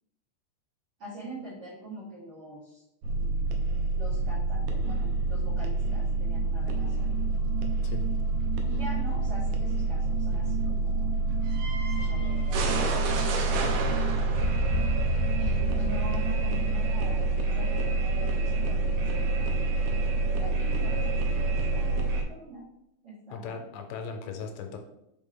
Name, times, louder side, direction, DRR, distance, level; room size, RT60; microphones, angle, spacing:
voice 1, 1.0-2.8 3.2-3.6 3.9-7.1 8.6-11.1 12.0-14.5 15.4-19.7 20.3-22.6 23.0-23.6, right 1 dB, 55° right, -9 dB, 1.7 m, -44 dB
sound 1, 3.0-22.2, right 3 dB, 80° right, 2.3 m, -27 dB
voice 2, 23.3-24.8, left 5 dB, 80° left, 4 dB, 2.9 m, -38 dB
6.1 x 4.4 x 3.8 m, 0.83 s
omnidirectional pair, 5.1 m